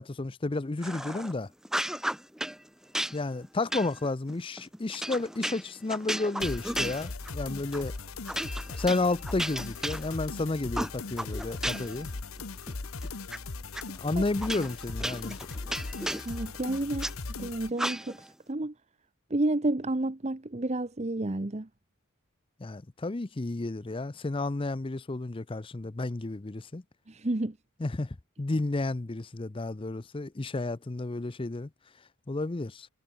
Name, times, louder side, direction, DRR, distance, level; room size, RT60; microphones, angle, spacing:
voice 1, 0.0-1.5 3.1-7.9 8.8-12.1 13.9-15.4 22.6-26.8 27.8-31.7 32.3-32.9, left 2 dB, 25° left, 0.5 m, -32 dB
sound 1, 0.8-1.3 1.6-2.6 2.9-7.4 7.7-7.9 8.3-10.4 10.7-12.0 12.4-13.4 13.7-13.8 14.4-17.1 17.8-18.3, right 1 dB, ahead, 1.3 m, -34 dB
sound 2, 6.4-17.7, left 3 dB, 85° left, 1.2 m, -39 dB
voice 2, 16.2-17.1 17.4-18.7 19.3-21.7 27.1-27.6, right 2 dB, 30° right, 0.9 m, -30 dB
head